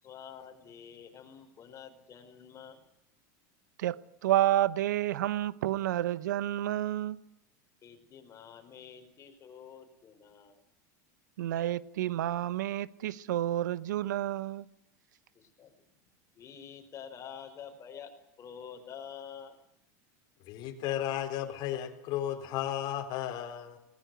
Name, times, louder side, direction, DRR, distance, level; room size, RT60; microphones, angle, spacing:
voice 1, 0.0-2.8 7.8-10.6 15.3-15.7 16.3-18.1 18.4-19.6, left 8 dB, 30° left, 5 dB, 5.0 m, -48 dB
voice 2, 3.8-7.2 11.4-14.6, right 13 dB, 90° right, 19 dB, 0.9 m, -30 dB
voice 3, 20.4-23.8, left 11 dB, 50° left, 5 dB, 3.9 m, -34 dB
19.0 x 19.0 x 9.2 m, 0.82 s
supercardioid pair, 120°, 10 cm